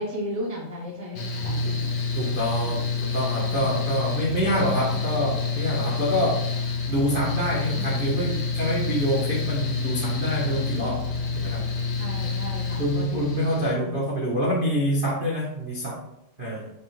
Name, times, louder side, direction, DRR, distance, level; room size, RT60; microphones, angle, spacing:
voice 1, 0.0-1.9 2.6-2.9 3.4-3.9 4.5-5.6 5.8-6.1 7.7-8.0 12.0-13.4 13.8-14.0, left 1 dB, 10° left, -5 dB, 0.6 m, -36 dB
Mechanical fan, 1.1-13.7, left 4 dB, 60° left, 2.4 m, -28 dB
voice 2, 2.1-6.4 6.9-11.0 11.3-11.6 12.8-16.0 16.4-16.7, equal, 40° right, -6 dB, 0.7 m, -26 dB
7.6 x 4.1 x 3.5 m, 0.79 s
omnidirectional pair, 3.6 m